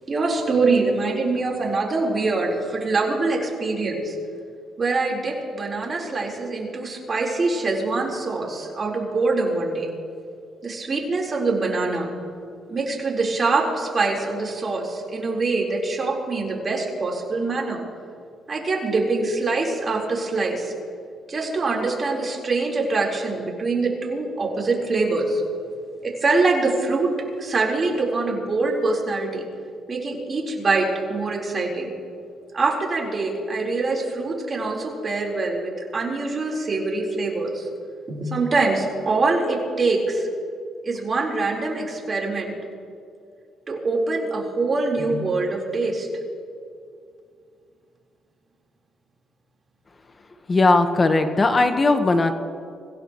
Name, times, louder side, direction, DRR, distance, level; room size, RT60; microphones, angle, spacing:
voice 1, 0.1-4.2 4.8-9.9 10.6-12.1 12.7-17.8 18.5-20.7 21.3-25.4 26.0-27.1 27.4-29.4 29.9-31.9 32.5-37.7 38.1-40.3 40.8-42.6 43.7-46.1, right 3 dB, 35° right, -2 dB, 4.1 m, -24 dB
voice 2, 50.5-52.3, left 3 dB, 30° left, 7 dB, 1.3 m, -18 dB
25.5 x 16.5 x 3.1 m, 2.4 s
cardioid pair, 90°, 0 cm